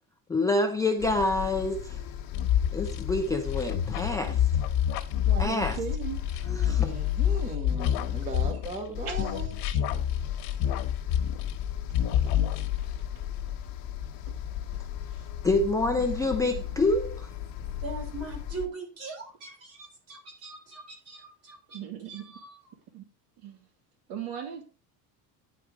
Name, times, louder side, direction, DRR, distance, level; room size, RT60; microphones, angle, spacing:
voice 1, 0.3-2.0 2.7-4.4 5.4-5.8 6.6-6.9 15.4-17.3, left 2 dB, 10° left, 0.3 m, -27 dB
sound 1, 1.0-18.7, left 10 dB, 60° left, 1.1 m, -35 dB
sound 2, 2.3-8.9 9.2-11.7 11.9-13.0, left 10 dB, 85° left, 1.2 m, -28 dB
voice 2, 5.3-6.2 14.3-14.4 14.7-14.8 15.1-15.2 16.2-16.3 16.6-16.7 21.7-22.2 22.9-23.0 23.4-23.7 24.1-24.6, right 8 dB, 85° right, 2.6 m, -37 dB
voice 3, 6.4-9.6, right 2 dB, 20° right, 1.3 m, -38 dB
voice 4, 17.8-21.8 22.1-22.7, right 3 dB, 40° right, 4.0 m, -41 dB
9.9 x 4.7 x 4.8 m
cardioid pair, 170°, 39 cm